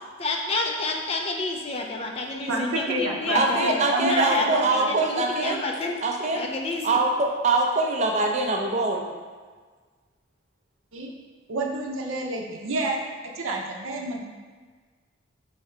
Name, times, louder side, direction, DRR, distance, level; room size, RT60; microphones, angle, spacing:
voice 1, 0.2-3.7 4.0-6.0 6.3-7.0, left 3 dB, 30° left, 1 dB, 0.4 m, -29 dB
voice 2, 2.5-4.9 10.9-11.1 11.5-13.0 13.4-14.2, right 2 dB, 85° right, 0 dB, 0.6 m, -29 dB
voice 3, 3.3-5.6 6.0-6.4 6.8-9.1, right 2 dB, 35° right, 1 dB, 0.5 m, -23 dB
5.7 x 2.8 x 3.2 m, 1.5 s
head